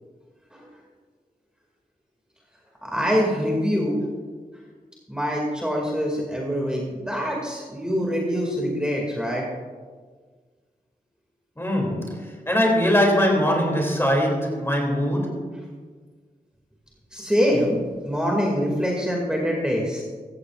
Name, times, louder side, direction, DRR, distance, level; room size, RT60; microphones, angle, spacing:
voice 1, 2.8-4.0 5.1-9.5 17.1-17.8 18.0-20.0, equal, 5° right, -2 dB, 2.3 m, -24 dB
voice 2, 11.6-15.5, equal, 15° left, 0 dB, 2.8 m, -22 dB
15.5 x 15.0 x 2.5 m, 1.5 s
wide cardioid pair, 75°, 16 cm